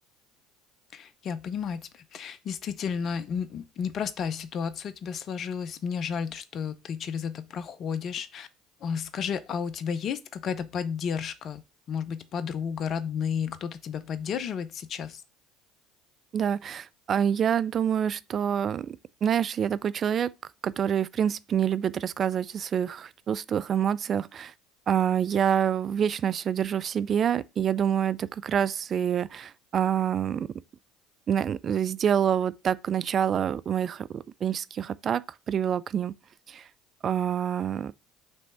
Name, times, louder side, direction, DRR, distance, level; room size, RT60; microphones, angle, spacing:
voice 1, 0.9-1.8 2.1-8.5 8.8-11.6 11.9-15.2, left 7 dB, 50° left, 0.6 m, -32 dB
voice 2, 16.3-20.3 20.6-24.5 24.9-30.5 31.3-36.1 36.5-36.7 37.0-37.9, right 8 dB, 45° right, 0.3 m, -27 dB
5.4 x 3.2 x 5.6 m
hypercardioid pair, 65°, 0 cm